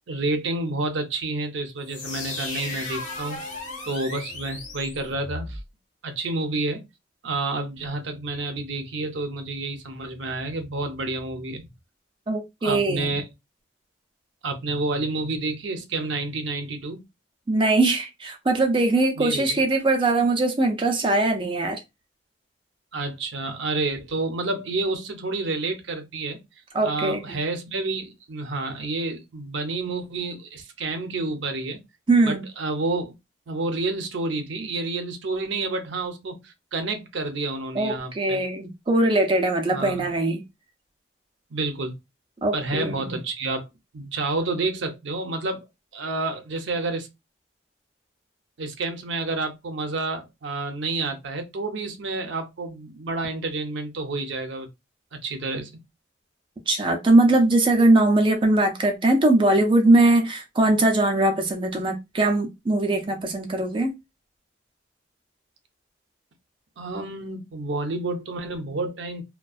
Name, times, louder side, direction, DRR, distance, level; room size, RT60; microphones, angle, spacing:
voice 1, 0.1-3.4 3.9-5.6 6.0-6.8 7.2-11.7 12.6-13.2 14.4-17.0 19.2-19.6 22.9-26.4 26.8-31.8 32.2-33.1 33.5-38.4 39.7-40.1 41.5-41.9 42.5-43.7 43.9-45.7 45.9-47.1 48.6-54.7 55.1-55.7 66.8-69.2, right 3 dB, 80° right, 0.5 m, -29 dB
sound 1, 1.8-5.6, left 2 dB, 40° left, 0.7 m, -35 dB
voice 2, 12.3-13.1 17.5-21.8 26.7-27.4 32.1-32.4 37.8-40.4 42.4-43.2 56.7-63.9, right 2 dB, 25° right, 0.4 m, -21 dB
2.4 x 2.2 x 2.3 m
head